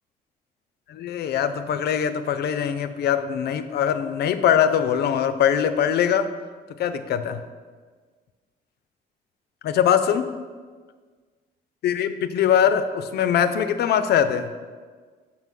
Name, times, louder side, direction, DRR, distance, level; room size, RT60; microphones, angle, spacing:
voice 1, 0.9-6.3 6.8-7.4 9.6-10.3 11.8-14.5, left 9 dB, 80° left, 11 dB, 0.4 m, -22 dB
6.0 x 5.8 x 3.7 m, 1.5 s
cardioid pair, 115°, 17 cm